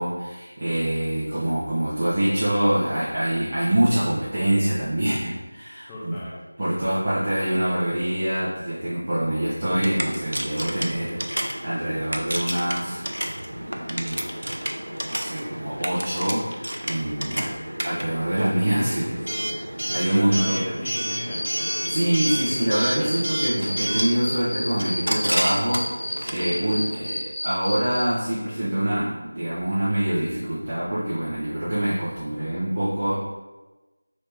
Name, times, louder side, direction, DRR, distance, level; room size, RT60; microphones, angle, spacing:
voice 1, 0.0-6.2 6.6-13.0 13.8-14.2 15.1-17.5 17.8-19.1 19.9-20.6 21.9-33.1, right 1 dB, 30° right, -10 dB, 0.7 m, -25 dB
voice 2, 5.9-6.4 6.8-7.3 17.2-17.6 18.8-19.6 20.1-23.3, left 1 dB, 10° left, -7 dB, 0.5 m, -39 dB
Coin (dropping) / Alarm, 9.6-27.1, equal, 80° right, 0.4 m, -31 dB
sound 1, 21.1-26.1 26.4-28.0, left 1 dB, 40° left, 1.0 m, -31 dB
3.1 x 2.8 x 3.4 m, 1.2 s
figure-of-eight pair, 170°, 0 cm